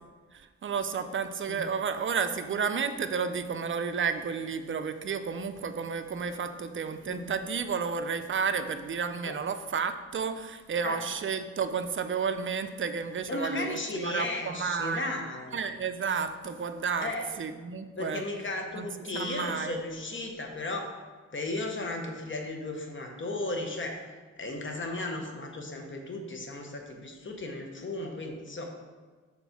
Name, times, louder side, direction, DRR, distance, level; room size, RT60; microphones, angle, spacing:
voice 1, 0.3-15.1 15.5-17.1 17.4-18.2 18.7-18.9 19.1-19.8, right 6 dB, 45° right, 9 dB, 0.4 m, -32 dB
voice 2, 13.3-15.6 17.0-17.3 18.0-20.9 21.3-24.0 24.4-28.6, left 2 dB, 40° left, 2 dB, 0.8 m, -35 dB
4.4 x 4.0 x 5.7 m, 1.4 s
wide cardioid pair, 110°, 30 cm